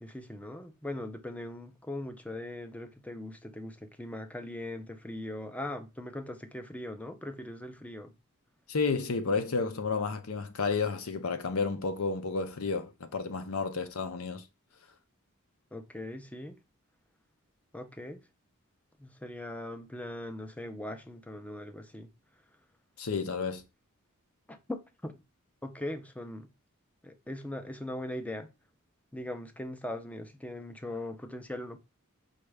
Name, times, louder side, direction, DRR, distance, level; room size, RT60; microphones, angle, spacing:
voice 1, 0.0-8.1 15.7-16.6 17.7-18.2 19.0-22.1 24.5-25.1 25.6-26.5 27.0-28.5 29.1-31.8, left 1 dB, 5° left, 0.5 m, -40 dB
voice 2, 8.7-14.4 23.0-23.6, left 4 dB, 75° left, 0.7 m, -31 dB
5.2 x 2.4 x 3.3 m
head